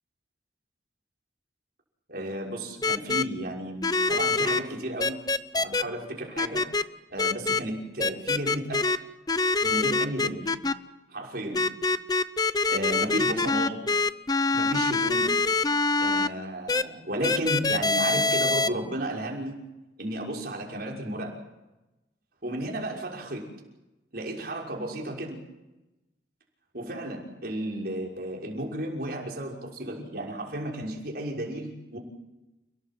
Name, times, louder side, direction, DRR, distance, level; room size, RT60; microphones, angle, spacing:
voice 1, 2.1-5.2 5.5-6.6 7.1-8.9 9.6-10.5 11.1-11.6 12.7-13.9 14.5-15.4 16.0-19.6 20.0-21.4 22.4-23.5 24.1-25.4 26.7-32.0, right 1 dB, 60° right, -1 dB, 5.9 m, -33 dB
sound 1, 2.8-3.2 3.8-4.6 5.0-5.8 6.4-6.8 7.2-7.6 8.0-9.0 9.3-10.7 11.5-16.3 16.7-16.8 17.2-18.7, left 3 dB, 20° left, 0.7 m, -24 dB
30.0 x 18.0 x 7.7 m, 1.0 s
head